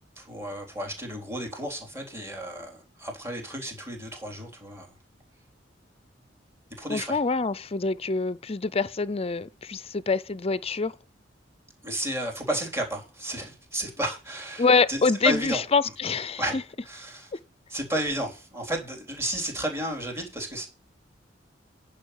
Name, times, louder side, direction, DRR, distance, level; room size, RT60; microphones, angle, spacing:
voice 1, 0.2-4.9 6.8-7.2 11.8-15.6 16.4-16.6 16.9-17.3 17.7-20.7, right 1 dB, 15° right, 3.6 m, -32 dB
voice 2, 6.9-10.9 14.6-16.4, left 4 dB, 35° left, 0.6 m, -25 dB
10.5 x 5.5 x 6.6 m
head